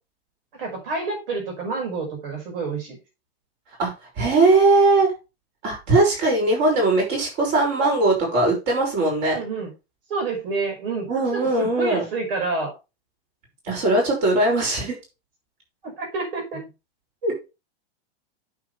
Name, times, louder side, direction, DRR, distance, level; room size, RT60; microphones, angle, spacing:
voice 1, 0.6-3.0 9.3-9.7 10.1-12.7 15.8-16.7, right 3 dB, 60° right, 2 dB, 5.6 m, -28 dB
voice 2, 4.2-5.1 5.6-9.4 11.1-12.0 13.7-15.0 17.2-17.3, right 2 dB, 35° right, 1 dB, 6.1 m, -20 dB
9.1 x 7.9 x 3.4 m, 0.27 s
supercardioid pair, 175°, 31 cm